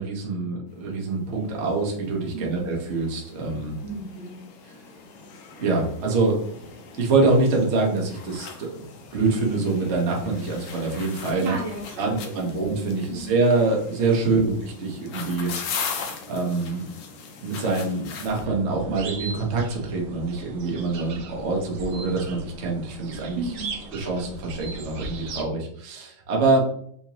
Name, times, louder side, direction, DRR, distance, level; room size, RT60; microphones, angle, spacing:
voice 1, 0.0-3.8 5.6-6.4 7.0-8.7 9.1-11.5 12.0-15.5 16.3-16.8 17.4-23.4 23.9-26.6, right 3 dB, 50° right, -1 dB, 0.8 m, -25 dB
sound 1, 1.0-1.1 1.3-18.5, left 5 dB, 70° left, 0.9 m, -40 dB
voice 2, 2.3-2.7 3.8-4.5 11.4-12.6 13.1-13.4 23.3-23.8, right 3 dB, 85° right, 0 dB, 1.8 m, -34 dB
sound 2, 18.2-25.4, right 4 dB, 70° right, 1.1 m, -39 dB
4.3 x 2.7 x 2.9 m, 0.66 s
omnidirectional pair, 2.1 m